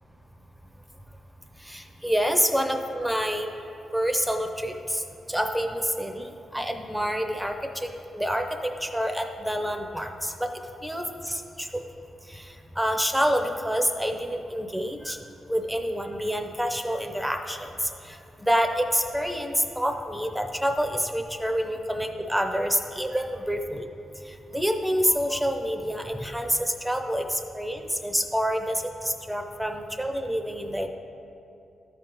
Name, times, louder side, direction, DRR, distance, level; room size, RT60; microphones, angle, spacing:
voice 1, 1.6-3.5 3.9-5.0 5.3-10.5 10.8-11.7 12.3-12.5 12.8-15.2 15.5-23.9 24.5-30.9, equal, 5° right, 5 dB, 0.6 m, -27 dB
12.5 x 5.1 x 3.0 m, 2.6 s
cardioid pair, 110°, 0 cm